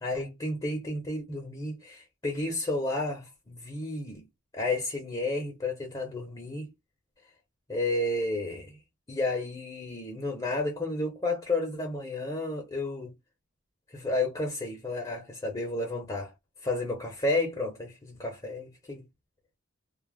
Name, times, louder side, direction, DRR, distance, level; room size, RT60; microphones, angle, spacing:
voice 1, 0.0-4.2 4.5-6.7 7.7-8.8 9.1-13.1 13.9-16.3 16.6-19.1, left 2 dB, 20° left, 0.7 m, -31 dB
2.3 x 2.0 x 3.2 m
head